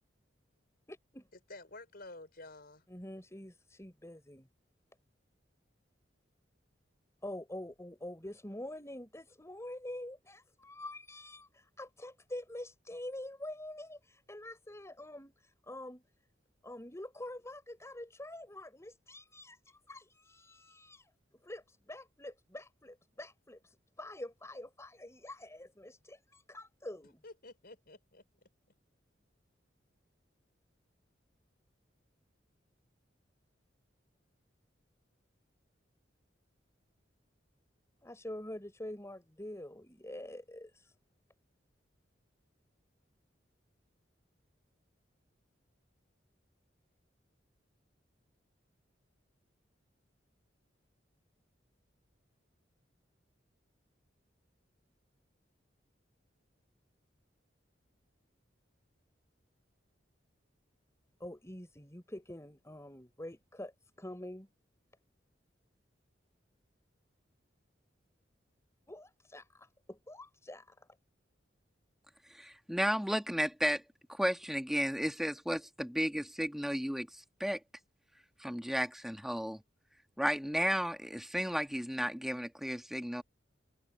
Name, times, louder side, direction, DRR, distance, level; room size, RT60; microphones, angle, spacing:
voice 1, 0.9-1.3 2.9-4.5 7.2-15.3 15.7-16.0 16.6-21.1 21.4-27.2 38.0-40.9 61.2-64.5 68.9-70.9, left 1 dB, 15° left, 5.4 m, -46 dB
voice 2, 1.5-2.8 27.2-28.2, left 2 dB, 55° left, 5.1 m, -50 dB
voice 3, 72.4-73.8 74.1-77.1 77.4-77.6 78.4-79.6 80.2-83.2, equal, ahead, 1.4 m, -33 dB
head